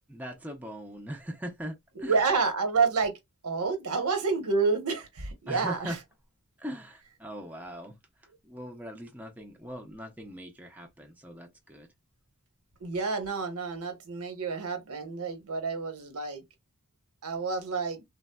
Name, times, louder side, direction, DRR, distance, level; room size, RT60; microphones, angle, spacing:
voice 1, 0.1-2.2 5.5-6.0 6.6-8.0 8.4-11.9, equal, 5° right, 0.5 m, -40 dB
voice 2, 2.1-3.2 3.4-6.0 12.8-16.4 17.2-18.0, right 4 dB, 90° right, 0.9 m, -29 dB
3.3 x 2.0 x 2.2 m
head